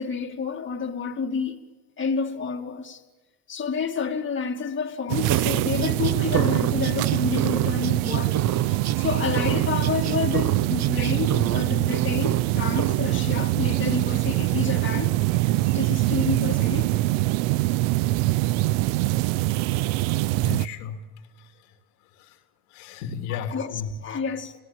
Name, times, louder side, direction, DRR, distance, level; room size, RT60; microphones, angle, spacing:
voice 1, 0.0-1.6 2.0-3.0 3.5-8.4 8.7-15.2 15.7-16.9 23.3-24.6, left 5 dB, 25° left, 2.5 m, -29 dB
sound 1, 5.1-20.7, right 18 dB, 80° right, 0.7 m, -24 dB
sound 2, 5.3-9.0 9.3-11.6 11.9-12.4 12.8-13.0, right 10 dB, 40° right, 0.8 m, -28 dB
voice 2, 20.4-21.0 21.4-21.5 22.1-22.4 22.7-23.9, left 7 dB, 85° left, 2.8 m, -34 dB
28.0 x 17.5 x 7.4 m
supercardioid pair, 95°, 42 cm